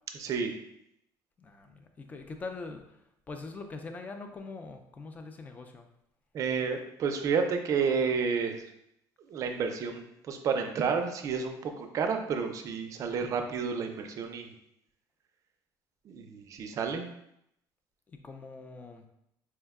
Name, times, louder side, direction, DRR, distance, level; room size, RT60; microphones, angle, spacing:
voice 1, 0.1-0.5 6.3-8.6 9.3-14.5 16.0-17.1, right 5 dB, 40° right, 5 dB, 0.4 m, -30 dB
voice 2, 1.4-5.9 18.1-19.1, left 3 dB, 20° left, 6 dB, 0.4 m, -43 dB
4.4 x 2.2 x 3.5 m, 0.78 s
cardioid pair, 155°, 8 cm